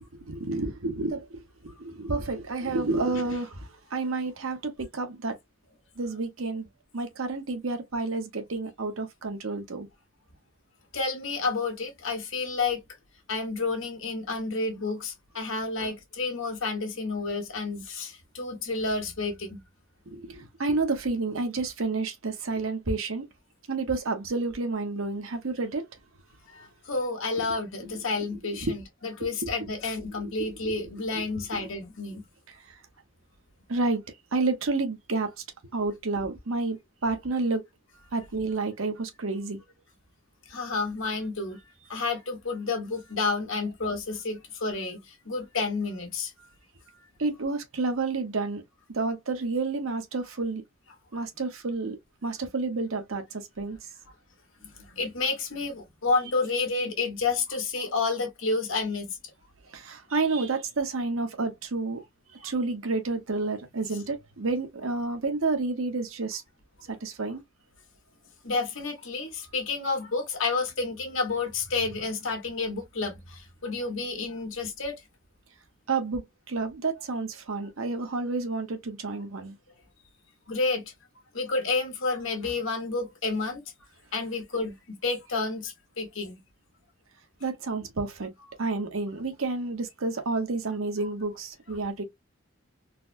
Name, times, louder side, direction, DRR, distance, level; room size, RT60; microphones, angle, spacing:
voice 1, 0.1-5.4 6.0-6.6 6.9-9.9 20.1-23.3 23.7-25.9 27.4-27.9 28.6-28.7 29.4-29.5 30.4-30.7 31.1-31.3 31.5-31.7 33.7-34.0 34.3-35.3 35.7-37.6 38.1-39.6 47.2-48.6 48.9-50.6 51.1-52.0 52.2-53.8 59.7-62.0 62.4-66.4 66.9-67.4 75.9-79.6 87.4-88.3 88.6-92.0, right 3 dB, 80° right, 0.9 m, -30 dB
voice 2, 10.9-12.8 13.3-19.6 26.5-32.2 40.5-41.6 41.9-46.5 54.6-59.1 62.4-62.5 68.4-75.0 79.4-79.5 80.5-80.9 81.3-83.6 84.1-84.7 85.0-86.4, left 3 dB, 75° left, 1.4 m, -30 dB
4.0 x 2.2 x 2.5 m
head